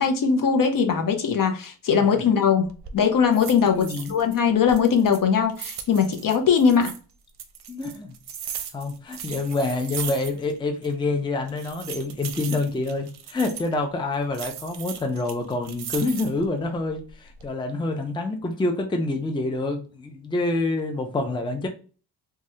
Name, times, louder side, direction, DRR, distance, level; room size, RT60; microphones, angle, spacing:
voice 1, 0.0-2.6 2.9-6.9, left 6 dB, 50° left, 0.6 m, -20 dB
sound 1, 2.6-3.0 3.3-4.4 4.7-7.0 7.4-10.6 10.8-10.9 11.5-13.7 14.3-16.5 17.0-17.5, right 8 dB, 65° right, 0.6 m, -37 dB
voice 2, 3.6-4.2 7.7-8.1 8.6-21.7, left 2 dB, 10° left, 0.5 m, -27 dB
3.0 x 2.4 x 2.7 m
cardioid pair, 80°, 43 cm